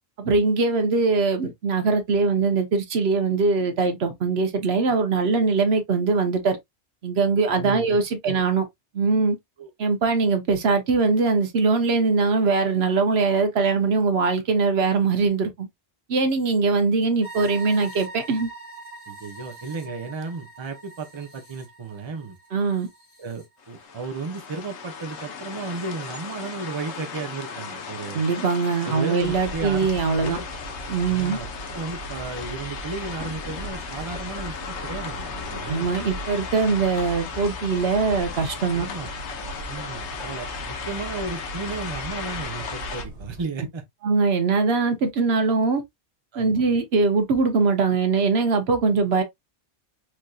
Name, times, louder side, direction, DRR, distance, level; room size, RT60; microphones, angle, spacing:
voice 1, 0.2-6.6 7.0-8.6 8.9-9.4 9.8-15.7 16.1-18.5 22.5-22.9 28.1-30.4 30.9-31.4 35.7-38.9 44.0-45.8 46.4-49.2, right 4 dB, 65° right, 1.0 m, -22 dB
voice 2, 7.6-8.0 8.3-8.4 9.6-9.7 19.1-22.4 23.2-28.2 28.8-29.9 30.2-30.5 31.1-31.5 31.7-35.9 38.7-39.1 39.7-43.8 46.3-46.6, right 4 dB, 30° right, 0.6 m, -34 dB
sound 1, 17.2-23.5, right 3 dB, 65° left, 1.8 m, -43 dB
sound 2, 23.6-43.1, left 5 dB, 80° left, 1.1 m, -36 dB
sound 3, 29.2-43.4, right 1 dB, 90° right, 1.5 m, -39 dB
4.5 x 2.6 x 2.3 m
omnidirectional pair, 1.1 m